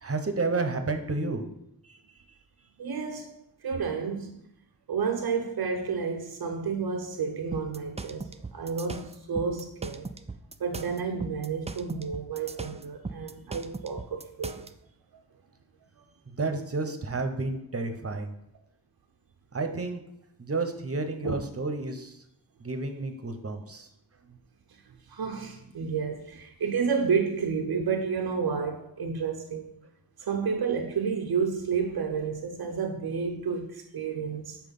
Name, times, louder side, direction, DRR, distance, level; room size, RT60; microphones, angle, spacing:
voice 1, 0.0-1.4 1.9-2.0 16.4-18.3 19.5-20.0 20.4-22.2 22.6-23.9, right 3 dB, 40° right, 0.9 m, -31 dB
voice 2, 2.8-4.4 4.9-10.1 10.6-14.7 21.2-21.4 25.1-29.7 30.3-34.6, right 5 dB, 85° right, 0.6 m, -30 dB
sound 1, 7.5-14.7, right 3 dB, 20° right, 0.4 m, -39 dB
5.8 x 4.4 x 5.4 m
wide cardioid pair, 60°, 36 cm